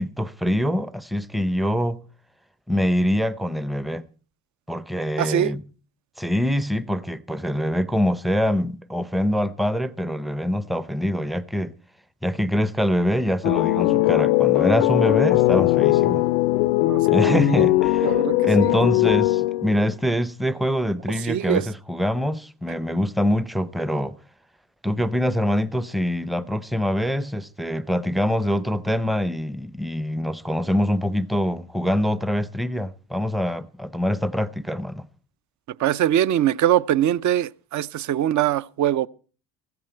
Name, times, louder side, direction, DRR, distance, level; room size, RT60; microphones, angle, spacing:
voice 1, 0.0-2.0 2.7-4.0 4.7-5.6 6.2-11.7 12.2-16.2 17.1-18.1 18.4-24.2 24.8-35.1, equal, ahead, 0.6 m, -24 dB
voice 2, 5.2-5.5 16.9-17.4 18.0-18.7 21.1-21.7 35.8-39.1, right 11 dB, 40° right, 0.6 m, -23 dB
sound 1, 13.4-19.9, left 17 dB, 85° left, 0.7 m, -19 dB
15.5 x 14.5 x 4.5 m
hypercardioid pair, 70°, 45 cm